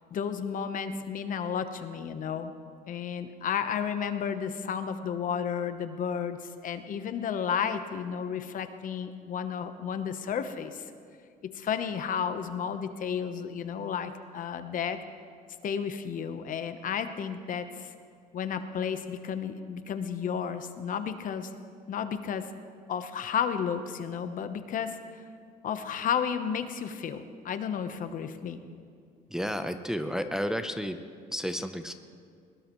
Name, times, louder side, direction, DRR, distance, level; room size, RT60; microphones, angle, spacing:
voice 1, 0.1-2.5 2.9-10.9 11.5-15.0 15.6-17.9 18.3-21.5 21.9-22.5 22.9-25.2 25.6-28.6, left 7 dB, 50° left, 9 dB, 0.9 m, -32 dB
voice 2, 29.3-31.0 31.3-31.9, equal, 5° right, 7 dB, 0.6 m, -31 dB
21.0 x 17.5 x 3.1 m, 2.2 s
cardioid pair, 110°, 17 cm